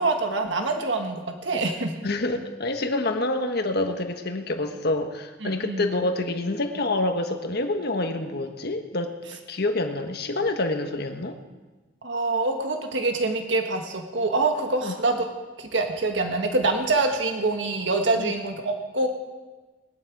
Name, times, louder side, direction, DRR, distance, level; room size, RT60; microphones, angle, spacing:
voice 1, 0.0-1.9 5.4-5.9 12.0-15.3 15.6-19.1, right 3 dB, 80° right, 4 dB, 1.6 m, -25 dB
voice 2, 2.0-9.1 9.5-11.4 14.8-14.9 18.2-18.3, left 2 dB, 60° left, 6 dB, 1.3 m, -27 dB
20.0 x 11.5 x 4.8 m, 1.2 s
head